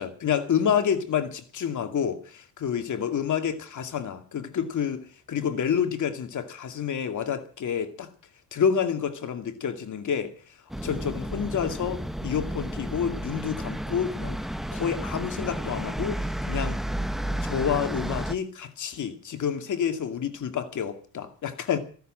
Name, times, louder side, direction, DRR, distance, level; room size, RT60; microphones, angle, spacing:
voice 1, 0.0-8.1 8.5-10.3 10.8-14.4 14.7-16.2 16.5-16.8 17.4-21.8, left 8 dB, 50° left, 2.4 m, -28 dB
sound 1, 10.7-18.3, right 1 dB, ahead, 1.0 m, -32 dB
14.0 x 12.0 x 7.6 m
supercardioid pair, 85°, 39 cm